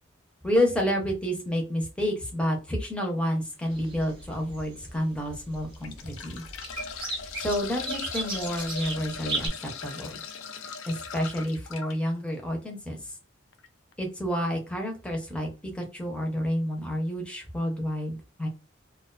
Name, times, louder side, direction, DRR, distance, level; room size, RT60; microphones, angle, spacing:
voice 1, 0.4-6.4 7.4-9.5 9.8-10.2 10.8-13.1 14.0-18.5, equal, 5° left, 1 dB, 0.6 m, -29 dB
sound 1, 3.6-3.9 4.5-4.6 5.5-11.9 13.5-13.7 13.9-14.0, left 5 dB, 80° left, 0.3 m, -39 dB
sound 2, 3.7-9.5, right 3 dB, 25° right, 0.8 m, -37 dB
2.4 x 2.2 x 2.3 m, 0.31 s
head